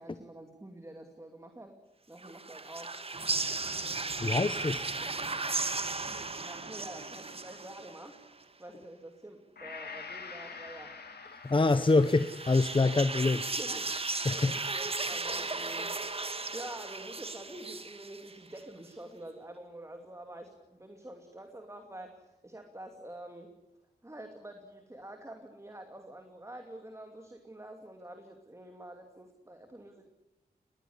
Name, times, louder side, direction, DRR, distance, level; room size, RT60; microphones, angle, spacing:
voice 1, 0.0-1.8 2.1-3.0 3.3-3.4 6.1-8.2 8.6-11.0 11.7-11.9 12.5-13.9 14.3-16.0 16.5-23.5 24.0-30.1, right 1 dB, 15° right, 5 dB, 2.7 m, -47 dB
sound 1, 2.2-8.2 11.6-18.6, right 3 dB, 35° right, 1.7 m, -36 dB
sound 2, 3.1-8.7, right 4 dB, 55° right, 2.3 m, -48 dB
voice 2, 4.2-4.9 11.4-13.4 14.2-14.6, left 3 dB, 30° left, 11 dB, 0.9 m, -25 dB
Gong, 9.6-17.9 18.3-18.4, left 5 dB, 75° left, 3.3 m, -49 dB
20.5 x 20.0 x 9.9 m, 0.94 s
wide cardioid pair, 95°, 17 cm